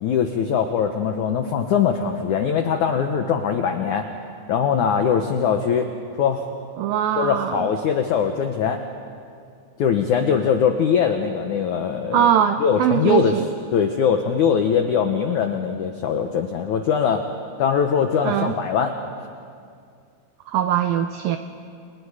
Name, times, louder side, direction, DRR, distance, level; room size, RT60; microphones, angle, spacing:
voice 1, 0.0-4.1 4.5-5.9 6.2-6.4 7.2-8.8 9.8-12.3 12.6-13.4 13.7-17.3 17.6-18.9, left 7 dB, 90° left, 5 dB, 1.7 m, -21 dB
voice 2, 6.8-7.7 12.1-13.4 18.2-18.5 20.5-21.4, right 10 dB, 85° right, 8 dB, 2.1 m, -21 dB
29.0 x 29.0 x 4.9 m, 2.3 s
omnidirectional pair, 5.0 m